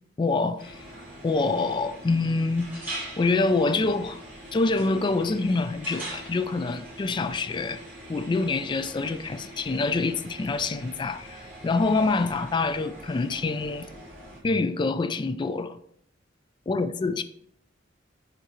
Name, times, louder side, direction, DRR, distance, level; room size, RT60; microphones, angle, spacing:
voice 1, 0.2-0.8 1.2-4.2 4.5-7.8 8.1-13.9 14.4-15.8 16.7-17.2, left 3 dB, 25° left, 0.3 m, -26 dB
sound 1, 0.6-14.4, right 1 dB, 10° right, 2.6 m, -43 dB
11.0 x 3.9 x 2.8 m
head